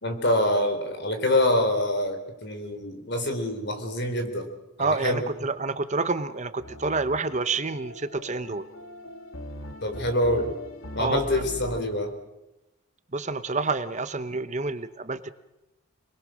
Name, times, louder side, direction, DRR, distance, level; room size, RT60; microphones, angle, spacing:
voice 1, 0.0-4.5 4.8-5.2 9.8-10.5 11.0-12.1, left 1 dB, 55° left, 6 dB, 3.8 m, -25 dB
voice 2, 4.8-8.7 11.0-11.4 13.1-15.3, right 3 dB, 35° right, 11 dB, 1.0 m, -28 dB
sound 1, 6.6-11.8, left 1 dB, 75° left, 2.4 m, -41 dB
27.5 x 21.0 x 6.4 m, 0.98 s
head